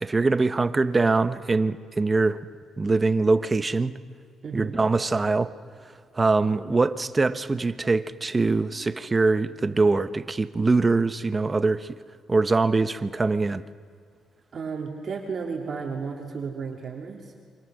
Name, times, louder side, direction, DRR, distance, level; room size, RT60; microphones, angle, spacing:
voice 1, 0.0-2.4 2.8-3.9 4.5-5.5 6.1-12.0 12.3-13.6, right 3 dB, 25° right, 12 dB, 1.0 m, -23 dB
voice 2, 4.4-4.8 14.5-17.3, right 5 dB, 45° right, 0 dB, 3.0 m, -33 dB
28.0 x 26.0 x 6.4 m, 2.1 s
cardioid pair, 90°, 0 cm